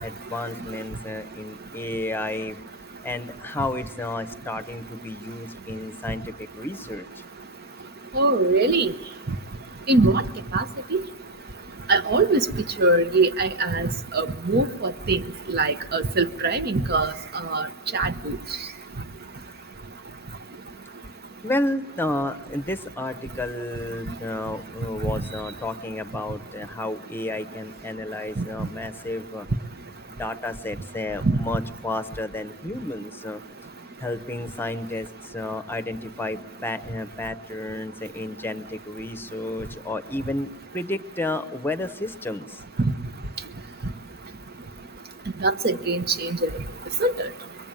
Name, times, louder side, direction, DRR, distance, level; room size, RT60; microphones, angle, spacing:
voice 1, 0.0-2.6 3.0-7.2 21.4-29.5 30.2-33.4 34.0-42.6, left 1 dB, 10° left, 11 dB, 0.9 m, -31 dB
voice 2, 8.1-8.9 9.9-10.2 10.5-10.6 10.9-11.0 11.9-12.5 12.8-13.9 14.1-15.2 15.5-17.1 17.4-17.7 17.9-18.4 28.4-28.5 31.3-31.4 45.4-46.5 47.0-47.3, right 2 dB, 50° right, 10 dB, 1.0 m, -22 dB
27.0 x 22.5 x 9.0 m, 1.1 s
head